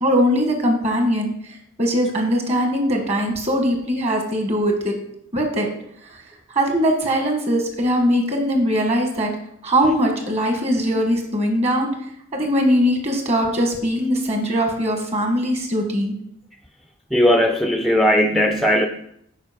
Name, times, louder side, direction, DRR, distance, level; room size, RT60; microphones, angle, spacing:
voice 1, 0.0-4.9 5.3-5.7 6.1-6.2 6.5-9.3 9.6-11.9 12.3-16.1, equal, 30° right, 3 dB, 1.4 m, -21 dB
voice 2, 17.1-18.9, left 1 dB, ahead, 4 dB, 0.4 m, -17 dB
7.3 x 5.0 x 5.1 m, 0.73 s
head